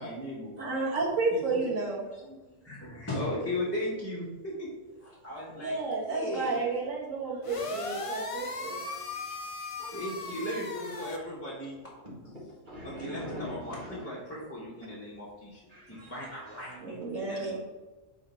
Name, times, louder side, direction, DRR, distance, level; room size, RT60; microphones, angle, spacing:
voice 1, 0.0-0.6 1.3-1.4 2.1-6.6 9.9-11.8 13.0-15.6 15.9-17.6, left 1 dB, 10° left, -8 dB, 1.4 m, -37 dB
voice 2, 0.6-2.0 5.5-8.9 13.0-13.4 13.9-14.0 16.8-17.6, right 3 dB, 85° right, -2 dB, 1.8 m, -32 dB
sound 1, 7.4-11.2, left 3 dB, 40° left, 0.5 m, -37 dB
voice 3, 12.0-14.1 15.7-16.8, equal, 40° right, -6 dB, 2.1 m, -44 dB
6.4 x 4.0 x 4.5 m, 1.2 s
omnidirectional pair, 1.3 m